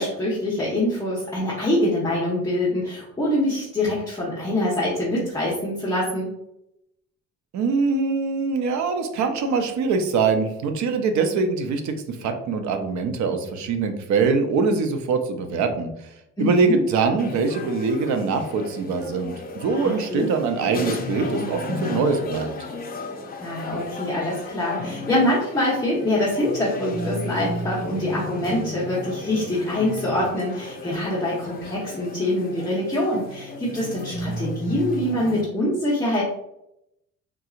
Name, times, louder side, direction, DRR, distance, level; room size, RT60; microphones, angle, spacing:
voice 1, 0.0-6.3 16.4-16.8 19.8-20.3 23.4-36.2, left 1 dB, 10° left, -8 dB, 1.0 m, -24 dB
voice 2, 7.5-15.9 16.4-22.5, right 4 dB, 70° right, 7 dB, 0.6 m, -23 dB
sound 1, 17.2-35.4, left 2 dB, 30° left, 0.6 m, -33 dB
3.7 x 2.8 x 2.4 m, 0.82 s
cardioid pair, 100°, 30 cm